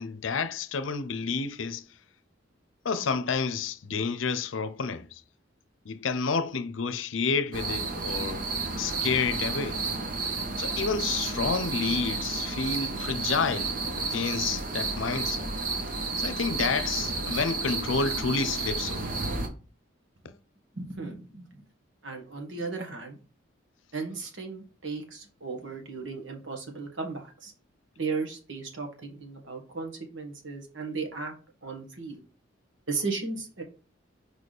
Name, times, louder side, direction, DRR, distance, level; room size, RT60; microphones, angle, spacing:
voice 1, 0.0-1.9 2.8-5.2 5.8-8.5 8.8-9.8 10.6-15.5 16.2-19.2, left 5 dB, 90° left, 0.6 m, -30 dB
sound 1, 7.5-19.5, right 3 dB, 45° right, 1.0 m, -31 dB
voice 2, 20.7-21.6 22.0-23.2 23.9-27.5 28.0-31.3 31.6-32.2 32.9-33.6, right 4 dB, 80° right, 1.7 m, -35 dB
4.9 x 4.1 x 5.0 m
head